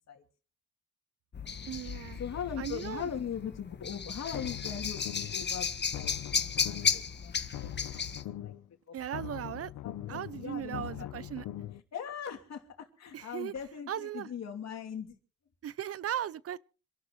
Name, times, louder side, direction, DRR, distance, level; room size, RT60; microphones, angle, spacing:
sound 1, 1.3-8.2, left 6 dB, 35° left, 1.4 m, -34 dB
voice 1, 1.7-2.2 2.6-3.1 8.9-9.7 10.1-11.5 13.1-13.5 13.9-14.3 15.6-16.6, right 10 dB, 50° right, 0.6 m, -37 dB
voice 2, 2.2-5.0 5.3-5.7 5.9-7.7 8.4-8.5 9.1-9.4 9.8-11.3 11.9-15.2, left 8 dB, 60° left, 3.0 m, -40 dB
sound 2, 4.2-5.5 5.8-7.1 7.4-8.7 9.0-11.8, left 13 dB, 85° left, 0.9 m, -42 dB
26.5 x 12.0 x 3.2 m
cardioid pair, 90°, 30 cm